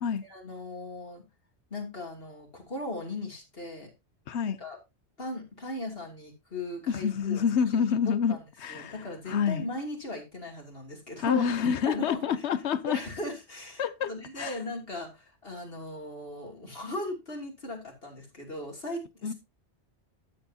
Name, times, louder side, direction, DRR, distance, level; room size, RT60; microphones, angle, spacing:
voice 1, 0.2-1.2 1.7-3.9 4.5-4.8 5.2-7.4 8.3-8.4 8.7-12.4 12.9-19.3, left 1 dB, 60° left, 3.1 m, -38 dB
voice 2, 6.9-8.9 9.3-9.7 11.2-13.0 13.8-14.1 14.4-14.5 19.2-19.3, left 7 dB, 80° left, 1.1 m, -27 dB
12.5 x 7.8 x 2.8 m
omnidirectional pair, 1.1 m